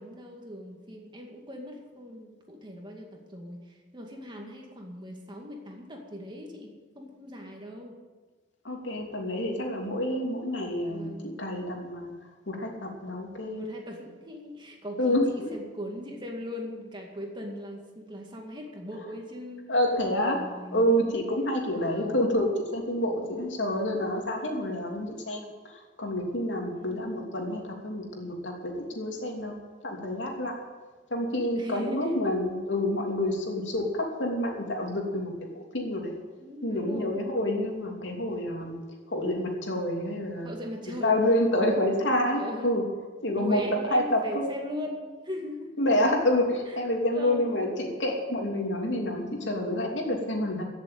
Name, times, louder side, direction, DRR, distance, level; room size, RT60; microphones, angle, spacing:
voice 1, 0.0-8.0 10.9-11.3 13.4-19.7 20.2-21.1 21.8-22.3 26.6-27.2 31.5-32.1 36.4-37.3 40.4-41.2 41.5-41.8 42.2-42.7 43.4-45.7 46.7-46.8 47.1-47.5, left 1 dB, 25° right, 1 dB, 2.3 m, -40 dB
voice 2, 8.6-12.1 12.5-13.7 15.0-15.5 19.7-20.4 20.7-29.5 29.8-30.6 31.1-36.2 36.6-38.7 39.1-40.5 41.0-42.8 43.2-44.5 45.8-50.6, left 1 dB, 90° left, 1 dB, 2.9 m, -28 dB
15.0 x 7.4 x 9.0 m, 1.4 s
head